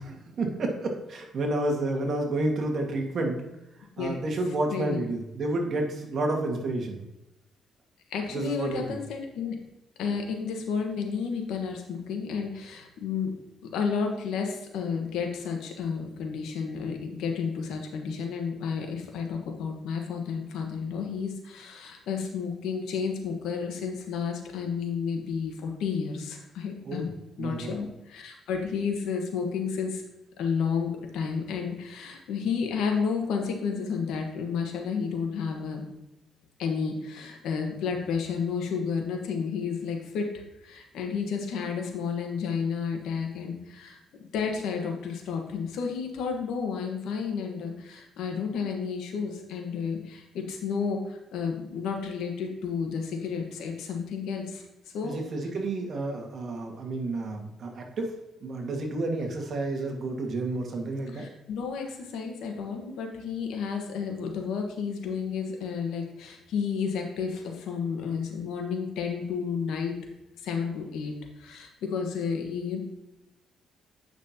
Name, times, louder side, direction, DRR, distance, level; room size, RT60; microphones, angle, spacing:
voice 1, 0.0-3.4 4.0-7.0 8.3-9.0 26.8-27.1 27.4-27.8 55.0-58.2 58.4-61.3, right 2 dB, 55° right, 2 dB, 1.7 m, -30 dB
voice 2, 4.7-5.0 8.1-9.5 10.0-13.3 13.7-27.1 27.4-30.0 30.4-35.8 36.6-40.3 40.6-44.0 44.3-54.6 54.9-55.2 61.1-69.9 70.4-71.1 71.4-72.8, left 6 dB, 85° left, 3 dB, 1.3 m, -31 dB
8.5 x 6.0 x 2.9 m, 0.95 s
cardioid pair, 90°, 0 cm